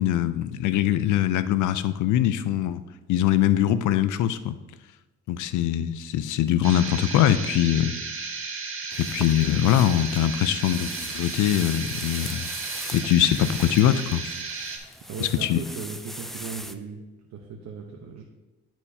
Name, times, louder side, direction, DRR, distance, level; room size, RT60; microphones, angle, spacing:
voice 1, 0.0-2.8 3.1-4.6 5.3-8.0 9.0-12.5 12.9-14.3 15.2-15.6, left 11 dB, 80° left, 13 dB, 0.5 m, -22 dB
sound 1, 6.6-14.8, right 4 dB, 45° right, 1.4 m, -34 dB
sound 2, 8.9-16.8, equal, ahead, 0.4 m, -41 dB
voice 2, 15.1-17.0 17.3-18.2, right 5 dB, 60° right, 1 dB, 0.9 m, -37 dB
11.5 x 4.5 x 2.8 m, 1.1 s
cardioid pair, 90°, 30 cm